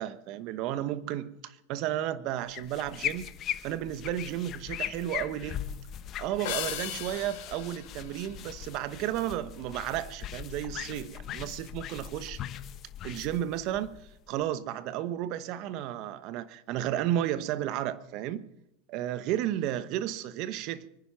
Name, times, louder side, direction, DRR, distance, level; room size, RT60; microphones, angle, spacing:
voice 1, 0.0-3.3 3.6-5.6 6.2-12.4 13.0-14.0 14.3-18.5 18.9-21.0, right 12 dB, 50° right, 1.1 m, -33 dB
sound 1, 2.5-14.4, left 11 dB, 35° left, 1.1 m, -40 dB
sound 2, 6.4-9.1, left 13 dB, 65° left, 3.6 m, -38 dB
23.5 x 10.0 x 5.8 m
supercardioid pair, 125°, 0 cm